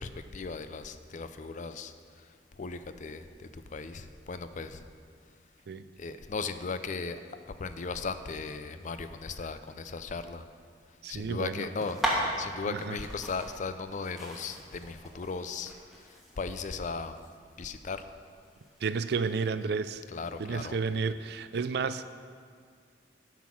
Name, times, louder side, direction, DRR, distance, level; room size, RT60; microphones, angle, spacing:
voice 1, 0.0-1.9 2.6-3.2 3.7-4.8 6.0-7.2 7.6-10.4 11.1-12.0 12.4-15.7 16.4-17.1 17.6-18.0 20.1-20.8, left 4 dB, 45° left, 11 dB, 0.5 m, -37 dB
voice 2, 11.0-11.7 12.6-13.0 18.8-20.0 20.4-22.1, right 5 dB, 65° right, 13 dB, 0.4 m, -31 dB
sound 1, 11.8-19.5, equal, ahead, 1.4 m, -38 dB
9.5 x 6.0 x 6.2 m, 2.1 s
head